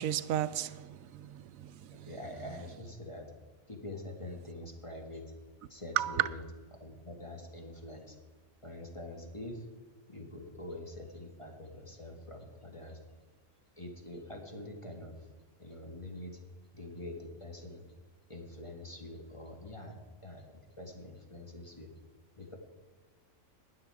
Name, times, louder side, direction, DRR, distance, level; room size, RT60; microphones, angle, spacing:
voice 1, 0.0-1.7 2.0-2.1 6.0-6.3, right 11 dB, 85° right, 1.0 m, -33 dB
voice 2, 2.0-3.3 3.7-5.3 5.7-6.4 6.7-8.1 8.6-9.6 10.1-13.0 13.8-15.1 15.6-16.4 16.7-17.8 18.3-20.4 20.8-21.9 22.4-22.6, left 1 dB, 25° left, 1.7 m, -45 dB
20.0 x 6.6 x 4.8 m
omnidirectional pair, 1.4 m